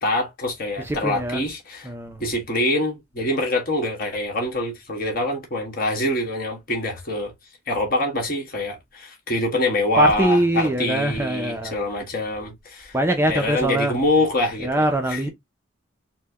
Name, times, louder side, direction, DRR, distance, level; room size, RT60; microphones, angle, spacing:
voice 1, 0.0-1.9 2.2-7.3 7.7-13.0 13.3-15.3, left 1 dB, 45° left, 1.5 m, -25 dB
voice 2, 0.8-1.4 1.8-2.2 10.0-11.7 12.9-13.9 14.6-15.3, right 1 dB, 10° right, 0.4 m, -22 dB
4.4 x 2.1 x 2.8 m
head